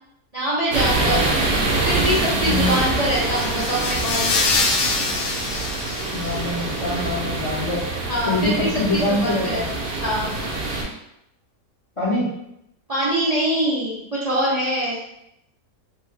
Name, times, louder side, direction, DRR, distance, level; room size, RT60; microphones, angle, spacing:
voice 1, 0.3-1.3 1.8-4.3 8.1-10.3 12.9-15.0, equal, 45° right, -7 dB, 0.5 m, -24 dB
sound 1, 0.7-10.8, right 2 dB, 70° right, 1.2 m, -25 dB
voice 2, 2.4-2.7 6.1-7.8 8.3-9.7 12.0-12.3, left 2 dB, 45° left, -6 dB, 0.4 m, -24 dB
sound 2, 2.9-6.8, left 3 dB, 80° left, 1.1 m, -25 dB
2.9 x 2.8 x 3.2 m, 0.80 s
omnidirectional pair, 1.7 m